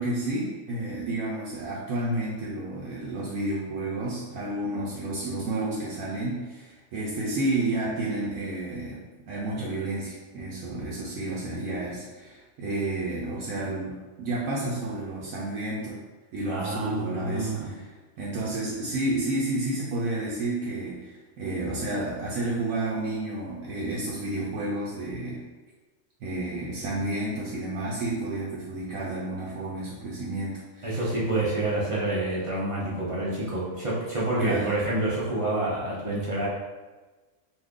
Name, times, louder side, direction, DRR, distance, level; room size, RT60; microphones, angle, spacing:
voice 1, 0.0-16.0 16.3-25.4 26.2-31.1 34.4-34.7, right 2 dB, 85° right, -6 dB, 1.0 m, -31 dB
voice 2, 16.5-17.7 30.8-36.5, right 2 dB, 40° right, -8 dB, 0.5 m, -28 dB
2.7 x 2.5 x 3.5 m, 1.3 s
omnidirectional pair, 1.4 m